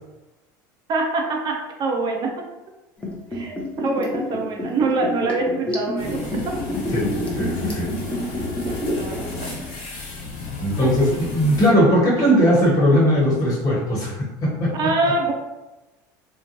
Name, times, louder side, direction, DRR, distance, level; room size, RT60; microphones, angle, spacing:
voice 1, 0.9-2.4 3.3-6.5 8.1-9.9 10.8-11.1 14.7-15.3, right 3 dB, 45° right, 2 dB, 0.5 m, -25 dB
Liquid, 3.0-9.2 9.4-9.5, left 1 dB, 10° left, 0.7 m, -27 dB
sound 1, 6.0-11.7, left 2 dB, 65° left, 1.0 m, -32 dB
voice 2, 6.9-7.9 10.6-14.8, equal, 35° left, -5 dB, 1.2 m, -19 dB
2.4 x 2.2 x 2.9 m, 1.0 s
supercardioid pair, 95°, 10 cm